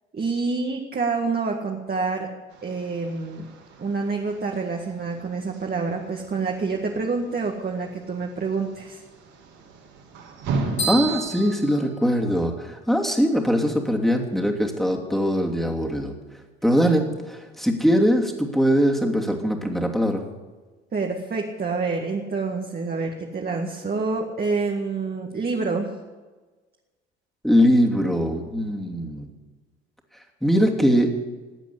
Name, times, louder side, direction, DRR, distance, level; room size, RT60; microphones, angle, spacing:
voice 1, 0.1-2.3 2.6-3.5 3.8-9.0 20.9-25.9, right 4 dB, 30° right, 1 dB, 1.9 m, -27 dB
sound 1, 2.5-11.5, right 3 dB, 60° right, 3.2 m, -37 dB
sound 2, 10.8-12.7, right 3 dB, 80° left, 6.4 m, -31 dB
voice 2, 10.9-16.1 16.6-20.2 27.4-29.3 30.4-31.1, equal, ahead, 1 dB, 2.8 m, -21 dB
15.5 x 9.1 x 8.4 m, 1.3 s
hypercardioid pair, 60°, 32 cm